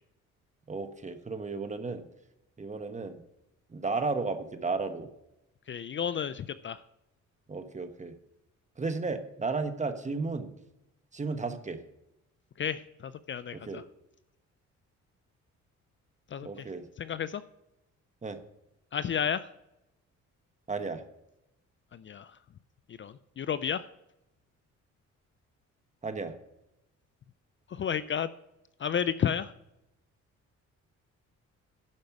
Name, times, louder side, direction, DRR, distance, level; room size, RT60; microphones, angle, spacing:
voice 1, 0.7-2.1 2.6-3.2 3.7-5.1 7.5-8.1 8.8-10.5 11.1-11.8 13.5-13.8 16.4-16.9 18.2-18.4 20.7-21.0 26.0-26.3, right 4 dB, 25° right, 8 dB, 1.2 m, -33 dB
voice 2, 5.7-6.8 12.6-13.8 16.3-16.5 17.0-17.4 18.9-19.5 21.9-22.4 22.9-23.9 27.7-28.3 28.8-29.5, left 8 dB, 40° left, 14 dB, 0.5 m, -32 dB
12.0 x 5.3 x 6.0 m, 0.87 s
cardioid pair, 90°, 30 cm